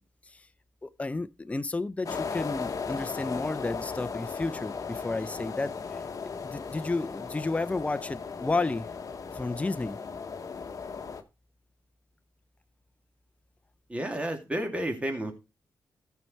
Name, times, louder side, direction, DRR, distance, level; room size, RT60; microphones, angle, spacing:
voice 1, 0.8-8.9 9.3-10.0, left 3 dB, 20° left, 0.5 m, -32 dB
sound 1, 2.1-11.2, left 5 dB, 50° left, 1.1 m, -37 dB
voice 2, 13.9-15.3, right 1 dB, 15° right, 2.1 m, -31 dB
13.5 x 4.6 x 4.2 m
cardioid pair, 70°, 7 cm